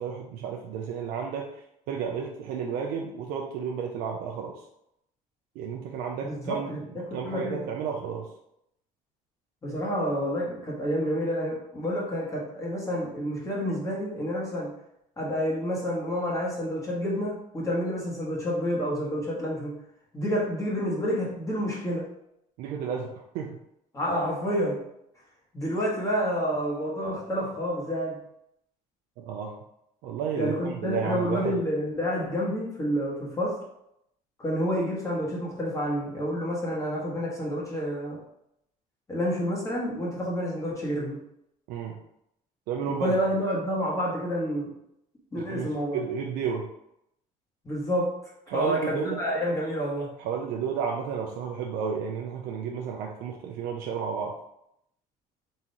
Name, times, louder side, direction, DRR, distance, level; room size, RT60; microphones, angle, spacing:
voice 1, 0.0-1.5 1.9-4.6 5.6-6.7 6.9-8.3 22.6-23.6 29.2-29.6 30.0-31.6 41.7-42.0 42.7-43.2 45.4-46.7 48.5-49.2 50.2-54.4, right 6 dB, 75° right, 1 dB, 0.5 m, -32 dB
voice 2, 6.2-7.6 9.6-14.7 15.2-19.8 20.1-22.1 23.9-24.8 25.5-28.2 30.4-33.6 34.4-38.2 39.1-41.2 42.9-44.7 45.3-46.0 47.6-48.2 48.5-50.1, equal, 20° left, -4 dB, 1.3 m, -29 dB
3.7 x 2.9 x 4.0 m, 0.78 s
cardioid pair, 120°, 16 cm